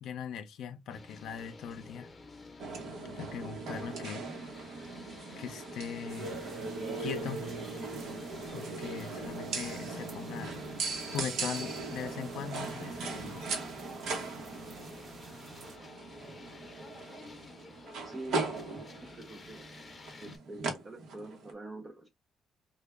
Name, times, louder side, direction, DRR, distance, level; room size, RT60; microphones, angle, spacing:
voice 1, 0.0-2.1 3.2-4.3 5.4-6.5 7.0-7.4 8.5-10.6 11.1-13.5, left 7 dB, 80° left, 0.5 m, -40 dB
sound 1, 0.9-20.4, left 3 dB, 30° left, 0.7 m, -52 dB
sound 2, 2.6-21.5, right 3 dB, 80° right, 1.0 m, -39 dB
sound 3, 6.1-15.8, right 3 dB, 60° right, 1.0 m, -52 dB
voice 2, 18.0-18.5 19.0-19.7 20.2-22.1, right 2 dB, 25° right, 0.5 m, -45 dB
3.3 x 2.2 x 3.4 m
cardioid pair, 90°, 0 cm